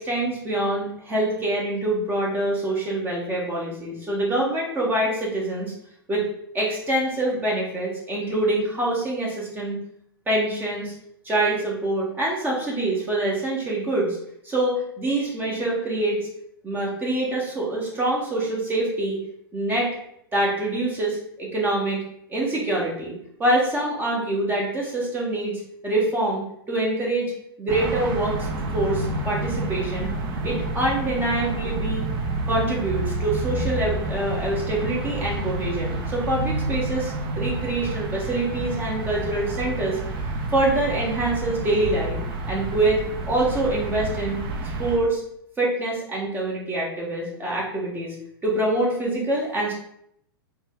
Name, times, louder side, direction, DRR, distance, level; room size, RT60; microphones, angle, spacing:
voice 1, 0.0-5.7 6.1-6.2 6.5-9.8 10.3-10.9 11.2-14.2 14.4-16.2 16.6-19.2 19.5-19.9 20.3-22.0 22.3-23.1 23.4-26.4 26.7-27.3 27.6-28.5 28.7-30.1 30.4-32.0 32.5-40.0 40.5-42.2 42.5-43.0 43.2-44.4 44.8-45.2 45.6-48.1 48.4-49.7, right 1 dB, 15° right, -4 dB, 1.3 m, -25 dB
sound 1, 27.7-45.0, right 2 dB, 40° right, 0.6 m, -29 dB
4.0 x 2.2 x 3.6 m, 0.72 s
figure-of-eight pair, 105°, 13 cm